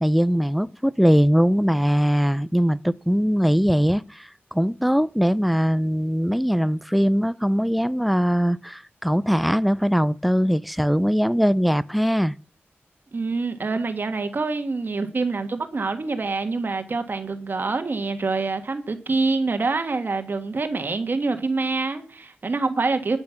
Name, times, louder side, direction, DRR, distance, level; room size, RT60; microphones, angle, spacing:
voice 1, 0.0-12.4, equal, ahead, 0.5 m, -21 dB
voice 2, 13.1-23.2, right 3 dB, 50° right, 1.6 m, -26 dB
12.0 x 8.9 x 5.8 m
wide cardioid pair, 90°, 4 cm